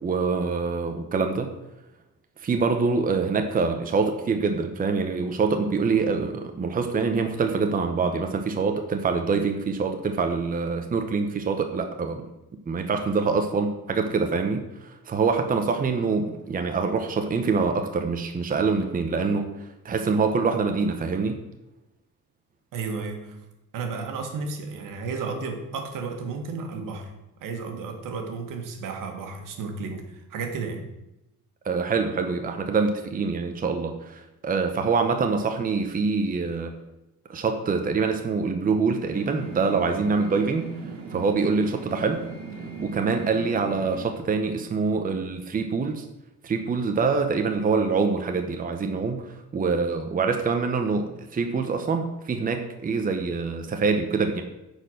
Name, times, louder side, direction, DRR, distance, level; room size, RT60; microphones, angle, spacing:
voice 1, 0.0-1.5 2.4-12.2 12.7-19.5 19.8-21.4 31.6-36.7 37.3-40.7 41.1-42.2 42.8-46.0 46.4-49.3 49.5-54.4, right 4 dB, 25° right, 5 dB, 0.8 m, -25 dB
voice 2, 22.7-23.4 23.7-27.1 27.4-30.9, right 4 dB, 80° right, 4 dB, 1.7 m, -33 dB
sound 1, 39.1-44.1, right 4 dB, 60° right, 2.0 m, -38 dB
9.6 x 4.5 x 6.4 m, 0.92 s
cardioid pair, 125°, 32 cm